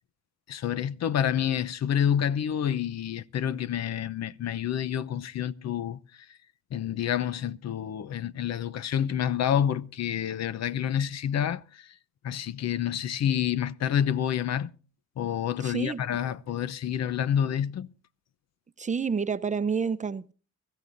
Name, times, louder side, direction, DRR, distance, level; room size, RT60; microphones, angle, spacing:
voice 1, 0.5-6.0 6.7-11.9 12.2-14.7 15.2-17.9, left 9 dB, 60° left, 0.8 m, -28 dB
voice 2, 15.6-16.0 18.8-20.3, right 5 dB, 25° right, 0.7 m, -29 dB
24.5 x 14.0 x 2.6 m
cardioid pair, 90°, 30 cm